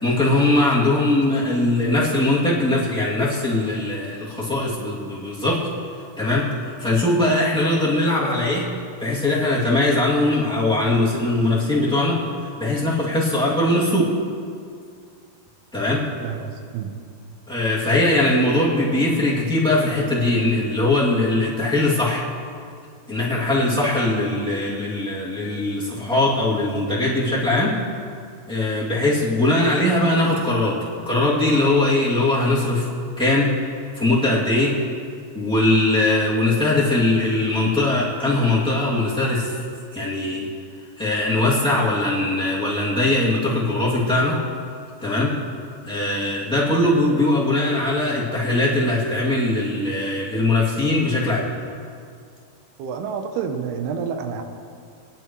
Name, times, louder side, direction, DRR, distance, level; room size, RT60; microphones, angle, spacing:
voice 1, 0.0-5.7 6.2-6.5 6.8-8.7 9.0-12.2 12.6-14.1 15.7-16.1 17.5-22.3 23.1-27.8 28.5-30.8 31.0-32.9 33.2-33.5 33.9-34.8 35.3-39.6 39.9-40.5 41.0-44.4 45.0-45.4 45.8-51.5, left 2 dB, 5° left, -8 dB, 1.1 m, -20 dB
voice 2, 16.2-17.0 52.8-54.4, right 6 dB, 90° right, 5 dB, 2.9 m, -29 dB
20.5 x 10.5 x 3.1 m, 2.3 s
omnidirectional pair, 4.5 m